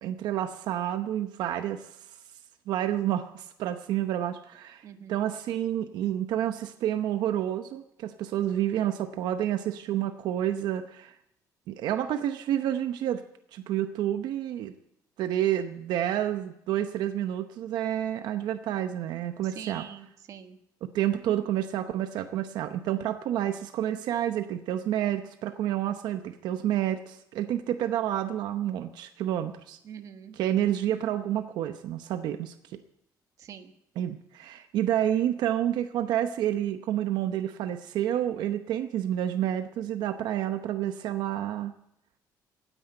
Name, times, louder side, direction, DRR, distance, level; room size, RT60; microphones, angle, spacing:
voice 1, 0.0-2.0 2.7-11.1 11.7-13.2 13.5-14.7 15.2-19.8 20.8-29.8 30.4-32.5 34.0-41.7, right 11 dB, 85° right, 8 dB, 0.9 m, -29 dB
voice 2, 4.8-5.2 19.4-20.6 29.8-30.4 33.4-33.7, right 8 dB, 50° right, 7 dB, 1.3 m, -44 dB
17.0 x 10.0 x 7.8 m, 0.78 s
cardioid pair, 160°, 7 cm